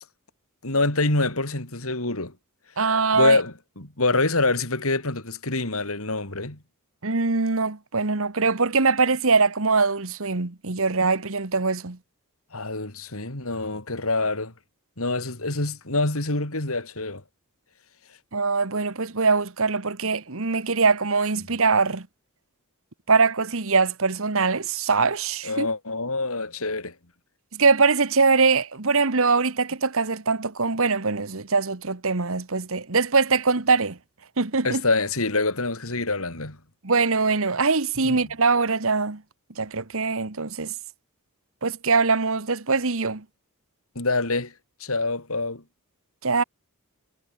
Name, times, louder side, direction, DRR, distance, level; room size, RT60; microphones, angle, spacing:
voice 1, 0.6-2.3 3.1-6.6 12.5-14.5 15.0-17.2 25.4-26.9 34.6-36.6 38.0-38.2 44.0-44.5 44.8-45.6, left 3 dB, 65° left, 4.0 m, -25 dB
voice 2, 2.8-3.4 7.0-12.0 18.3-22.1 23.1-25.7 27.5-34.0 34.4-34.8 36.8-39.2 39.6-40.7 41.6-43.2 46.2-46.4, right 4 dB, 65° right, 1.5 m, -22 dB
head